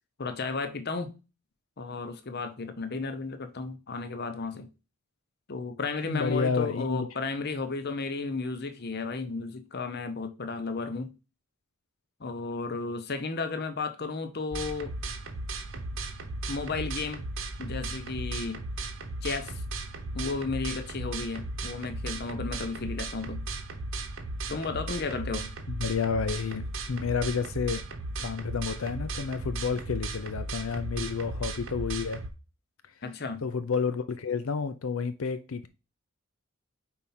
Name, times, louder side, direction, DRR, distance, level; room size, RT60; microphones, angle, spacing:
voice 1, 0.2-1.1 1.8-4.7 5.5-11.1 12.2-14.9 16.5-17.2 17.6-18.6 19.2-19.5 20.1-23.4 24.5-25.5 33.0-33.4, left 4 dB, 50° left, 0.8 m, -33 dB
voice 2, 6.0-7.1 25.7-27.8 28.2-32.2 33.4-35.7, left 5 dB, 80° left, 0.5 m, -30 dB
sound 1, 14.5-32.3, right 2 dB, 65° right, 1.0 m, -36 dB
4.6 x 4.3 x 5.6 m
head